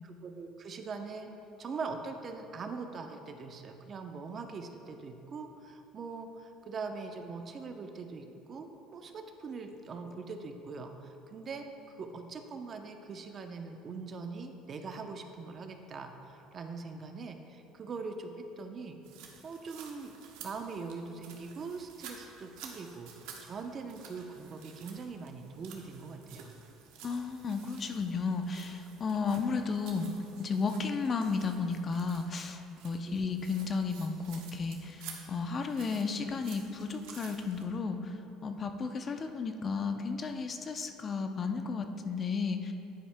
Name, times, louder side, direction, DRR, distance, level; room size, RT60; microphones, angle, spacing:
voice 1, 0.0-1.3 1.6-11.7 12.0-19.0 19.4-20.1 20.4-26.5 33.1-33.2, right 4 dB, 40° right, 5 dB, 0.7 m, -42 dB
sound 1, 19.0-37.6, right 6 dB, 80° right, 1.0 m, -52 dB
voice 2, 27.0-30.1 30.4-42.7, left 4 dB, 35° left, 6 dB, 0.6 m, -33 dB
10.0 x 9.7 x 2.2 m, 2.8 s
supercardioid pair, 105°, 0 cm